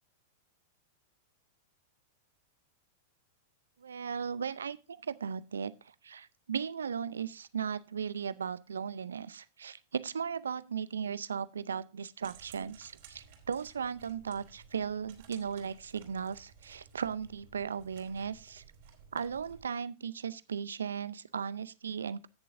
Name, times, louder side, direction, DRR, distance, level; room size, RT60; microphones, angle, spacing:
voice 1, 3.8-18.6 19.1-22.3, right 7 dB, 80° right, 0.6 m, -37 dB
sound 1, 12.2-19.7, right 7 dB, 60° right, 3.4 m, -56 dB
16.0 x 6.9 x 2.6 m
hypercardioid pair, 100°, 0 cm